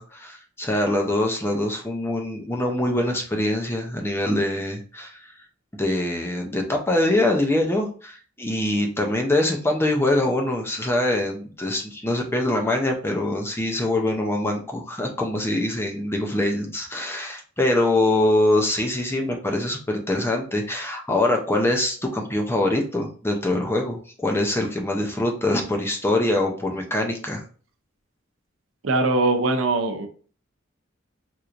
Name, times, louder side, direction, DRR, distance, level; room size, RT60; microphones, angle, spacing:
voice 1, 0.0-5.3 5.7-27.4, left 1 dB, 10° left, 2 dB, 0.6 m, -24 dB
voice 2, 28.8-30.1, right 2 dB, 80° right, 5 dB, 0.7 m, -21 dB
4.4 x 2.6 x 2.5 m, 0.41 s
head